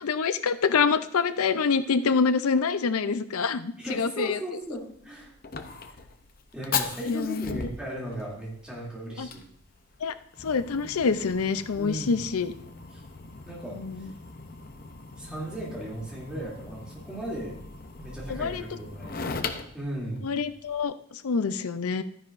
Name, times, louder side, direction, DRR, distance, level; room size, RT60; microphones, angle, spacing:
voice 1, 0.0-4.4 7.1-7.6 9.2-9.3 10.0-10.1 10.4-12.5 13.8-14.1 18.3-18.6 20.2-20.9 21.2-22.0, left 5 dB, 90° left, 12 dB, 0.5 m, -26 dB
voice 2, 3.8-5.3 6.5-9.4 11.7-12.2 12.9-13.0 13.4-14.1 15.2-17.6 18.0-19.5 19.7-20.3, right 1 dB, 5° right, -5 dB, 2.7 m, -36 dB
Fire, 4.6-20.8, left 5 dB, 40° left, 0.7 m, -39 dB
12.5 x 9.9 x 2.6 m, 0.64 s
head